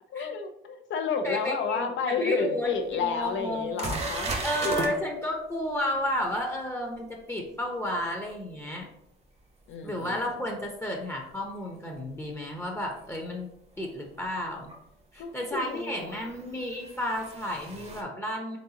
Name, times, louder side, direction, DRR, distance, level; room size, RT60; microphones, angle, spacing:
voice 1, 0.1-4.3 4.6-4.7 9.7-10.3 15.2-16.6, left 5 dB, 70° left, 7 dB, 0.6 m, -31 dB
voice 2, 1.2-3.9 4.4-8.9 9.8-13.5 13.8-14.7 15.1-18.6, equal, 10° left, 1 dB, 0.7 m, -32 dB
sound 1, 2.6-2.7 3.2-3.3 3.8-4.9 10.1-10.2 12.9-13.0 14.7-14.8 16.2-18.0, right 2 dB, 35° right, 0.8 m, -34 dB
4.0 x 3.5 x 2.8 m, 0.79 s
cardioid pair, 90°, 20 cm